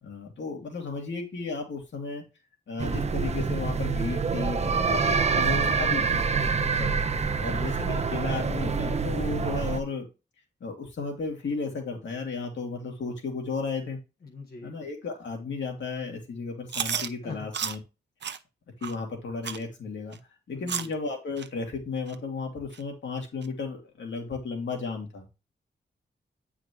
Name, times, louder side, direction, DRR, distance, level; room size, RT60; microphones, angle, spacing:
voice 1, 0.0-2.2 2.7-6.2 6.6-7.0 7.4-10.0 10.6-14.0 14.6-17.8 18.8-20.2 20.5-25.4, left 4 dB, 80° left, 1 dB, 2.5 m, -34 dB
sound 1, 2.8-9.8, right 5 dB, 35° right, 0.7 m, -26 dB
voice 2, 14.2-14.7 17.2-17.4 20.5-20.9, left 4 dB, 55° left, -3 dB, 1.7 m, -42 dB
Chewing mastication, 16.7-17.1 17.5-17.8 18.2-18.4 18.8-18.9 19.4-19.6 20.1-20.2 20.7-20.9 21.4-21.5 22.1-22.2 22.7-22.8 23.4-23.5, right 7 dB, 70° right, 0.7 m, -32 dB
9.5 x 4.9 x 3.0 m, 0.28 s
wide cardioid pair, 110°, 19 cm